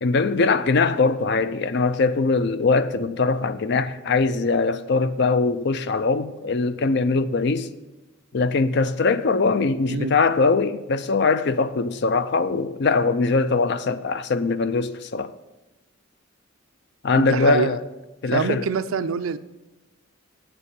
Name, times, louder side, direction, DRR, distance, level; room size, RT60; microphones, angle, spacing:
voice 1, 0.0-7.7 8.3-15.3 17.0-17.8 18.2-18.6, left 4 dB, 55° left, 0.5 m, -21 dB
voice 2, 17.1-17.7 18.3-19.4, right 5 dB, 80° right, 0.5 m, -25 dB
8.2 x 6.9 x 7.4 m
head